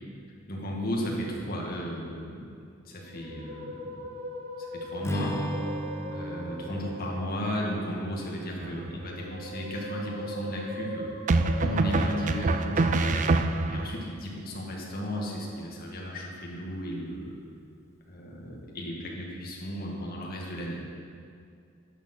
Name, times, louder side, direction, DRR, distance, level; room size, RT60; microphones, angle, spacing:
voice 1, 0.5-2.4 2.8-3.9 4.6-5.4 6.1-11.1 11.6-13.3 13.7-17.4 18.1-20.8, equal, 50° left, -2 dB, 2.0 m, -35 dB
Musical instrument, 3.0-7.6 8.9-13.7 14.9-15.3, equal, 60° right, 2.9 m, -40 dB
Strum, 5.0-9.4, equal, 15° left, 0.9 m, -37 dB
sound 1, 8.6-9.2 11.3-13.9, right 3 dB, 40° right, 0.4 m, -26 dB
10.5 x 6.9 x 6.1 m, 2.3 s
head